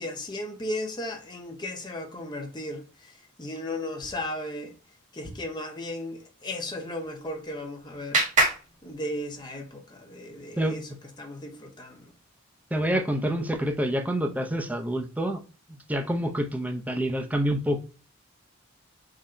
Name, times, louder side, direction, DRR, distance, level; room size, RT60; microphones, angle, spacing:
voice 1, 0.0-4.7 5.1-8.2 8.8-10.9 11.2-12.1, left 1 dB, 20° left, 0.7 m, -35 dB
Clapping, 7.0-9.6, right 2 dB, 35° right, 1.3 m, -29 dB
voice 2, 12.7-15.4 15.7-17.8, equal, 5° right, 0.4 m, -27 dB
3.8 x 2.1 x 4.1 m
head